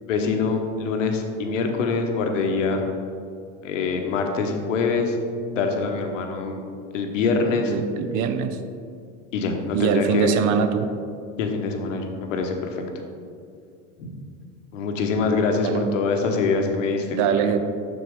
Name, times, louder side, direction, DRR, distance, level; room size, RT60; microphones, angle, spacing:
voice 1, 0.0-2.8 3.6-5.2 5.6-6.6 6.9-7.7 9.3-10.4 11.4-12.8 14.0-14.1 14.7-17.2, left 4 dB, 80° left, 3 dB, 1.0 m, -24 dB
voice 2, 7.7-8.6 9.7-10.9 15.6-15.9 17.1-17.6, right 8 dB, 50° right, 8 dB, 0.7 m, -23 dB
7.1 x 6.1 x 3.6 m, 2.4 s
hypercardioid pair, 90°, 37 cm